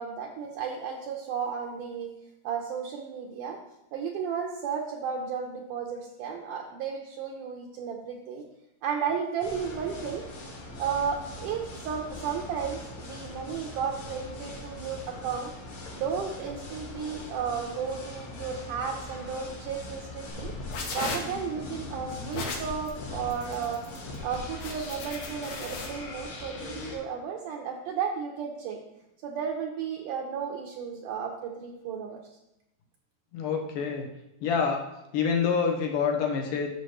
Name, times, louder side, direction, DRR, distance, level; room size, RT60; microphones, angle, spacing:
voice 1, 0.0-2.1 2.4-3.6 3.9-8.4 8.8-10.3 10.8-15.5 15.9-20.5 20.9-23.8 24.2-28.8 29.2-32.2, right 6 dB, 75° right, 0 dB, 2.0 m, -33 dB
sound 1, 9.4-27.0, left 1 dB, 45° left, 1.8 m, -42 dB
sound 2, 20.3-25.9, left 3 dB, 90° left, 3.3 m, -36 dB
voice 2, 33.3-34.1 34.4-34.8 35.1-36.7, left 6 dB, 70° left, 1 dB, 2.3 m, -26 dB
11.5 x 6.2 x 3.1 m, 0.88 s
omnidirectional pair, 4.3 m